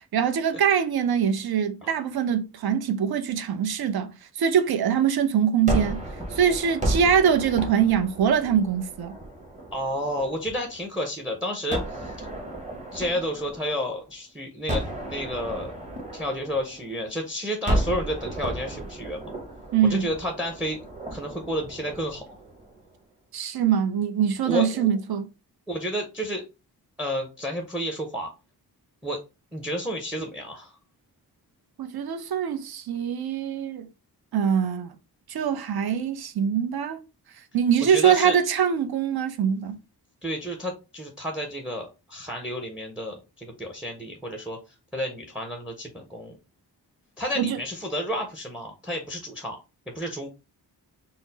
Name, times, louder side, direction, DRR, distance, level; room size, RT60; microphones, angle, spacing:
voice 1, 0.1-4.1 4.4-6.0 6.3-9.2 19.7-20.0 23.3-25.3 31.8-33.9 34.3-34.9 35.3-37.0 37.5-39.8 47.4-47.6, right 8 dB, 65° right, 0.6 m, -23 dB
Gunshot gunfire, 5.7-10.8 11.7-14.1 14.7-17.2 17.7-22.9, right 1 dB, 20° right, 0.9 m, -33 dB
voice 2, 9.7-12.1 12.9-15.7 16.1-19.3 19.8-20.9 21.1-22.4 24.5-24.9 25.7-26.4 27.0-28.3 29.0-29.2 29.5-30.8 37.8-38.4 40.2-44.6 44.9-46.4 47.2-49.6 49.9-50.3, equal, 5° right, 0.5 m, -31 dB
4.1 x 2.0 x 3.9 m
wide cardioid pair, 170°, 40 cm